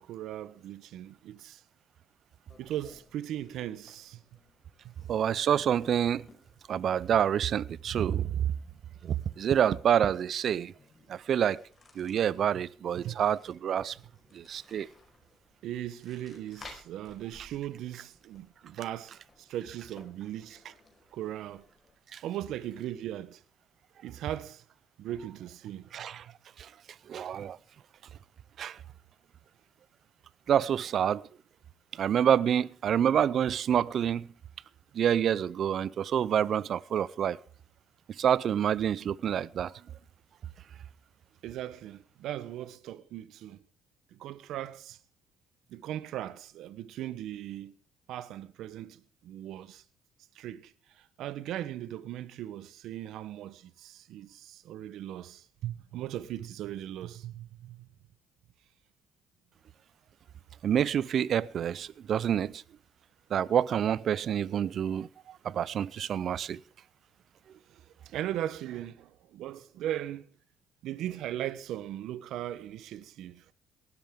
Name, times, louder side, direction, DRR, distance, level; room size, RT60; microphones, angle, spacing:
voice 1, 0.0-1.6 2.6-4.2 4.8-4.9 13.0-13.2 15.6-20.7 21.1-21.6 22.2-23.4 24.0-24.6 25.0-25.8 41.4-43.6 44.1-45.0 45.7-47.7 48.1-49.8 50.3-57.9 67.7-67.8 68.1-70.3 70.8-73.4, right 12 dB, 75° right, 0.9 m, -38 dB
sound 1, 2.5-22.0, left 3 dB, 30° left, 5.0 m, -58 dB
voice 2, 5.1-6.3 6.7-8.3 9.0-10.7 11.1-11.6 12.0-14.0 14.3-14.9 22.1-22.2 25.9-26.2 26.6-26.7 27.1-27.6 28.6-28.8 30.5-31.2 31.9-34.3 34.9-37.4 38.2-39.7 60.6-62.6 63.3-66.6, right 9 dB, 60° right, 0.5 m, -27 dB
18.5 x 13.0 x 3.7 m
supercardioid pair, 70°, 0 cm